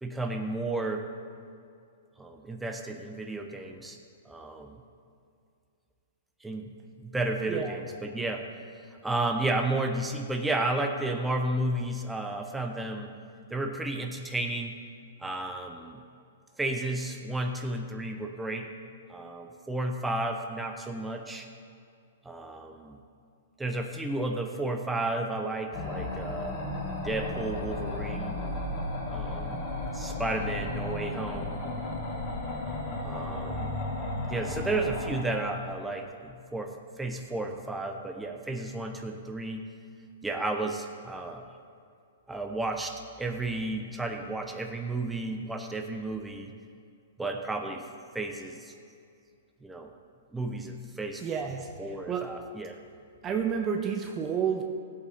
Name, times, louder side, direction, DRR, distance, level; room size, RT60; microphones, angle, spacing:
voice 1, 0.0-1.1 2.2-4.0 4.2-4.8 6.4-6.7 7.0-8.5 9.0-13.1 13.5-14.8 15.2-16.0 16.6-18.7 19.1-21.5 22.2-23.0 23.6-26.6 27.0-28.5 29.1-31.6 33.0-33.7 34.3-39.7 40.2-41.4 42.3-46.5 47.2-47.9 48.1-48.7 49.6-49.9 50.3-51.2 51.8-52.8, right 2 dB, 5° right, 4 dB, 1.0 m, -32 dB
sound 1, 25.7-35.2, left 2 dB, 35° left, 3.1 m, -34 dB
voice 2, 51.2-52.4 53.2-54.6, right 7 dB, 25° right, 4 dB, 0.8 m, -30 dB
16.5 x 8.5 x 4.3 m, 2.4 s
hypercardioid pair, 120°, 0 cm